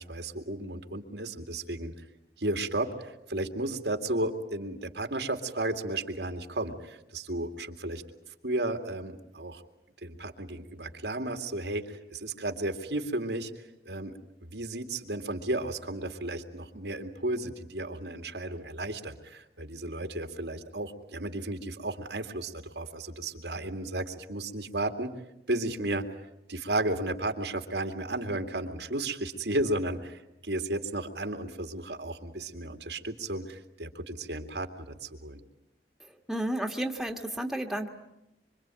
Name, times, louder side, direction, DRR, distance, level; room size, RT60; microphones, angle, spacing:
voice 1, 0.0-1.9 2.4-8.0 8.4-9.6 10.0-13.5 13.9-25.2 25.5-26.1 26.5-35.4, right 2 dB, 80° right, 5 dB, 2.4 m, -33 dB
voice 2, 36.3-37.9, right 1 dB, ahead, 3 dB, 1.6 m, -31 dB
25.5 x 25.5 x 9.1 m, 0.89 s
head